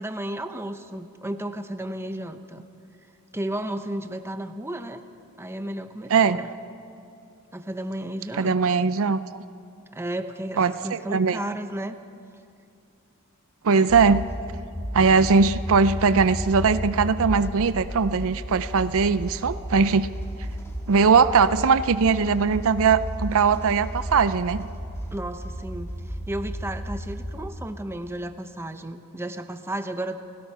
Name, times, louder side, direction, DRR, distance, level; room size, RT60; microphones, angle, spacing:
voice 1, 0.0-2.7 3.3-5.0 5.4-6.5 7.5-8.9 9.9-12.0 25.1-30.2, right 1 dB, 10° right, 8 dB, 0.9 m, -33 dB
voice 2, 8.4-9.4 10.6-11.4 13.6-14.2 14.9-20.1 20.9-24.7, right 5 dB, 65° right, 13 dB, 0.5 m, -20 dB
sound 1, 13.9-27.5, equal, 10° left, 2.5 m, -33 dB
29.0 x 17.5 x 5.6 m, 2.6 s
head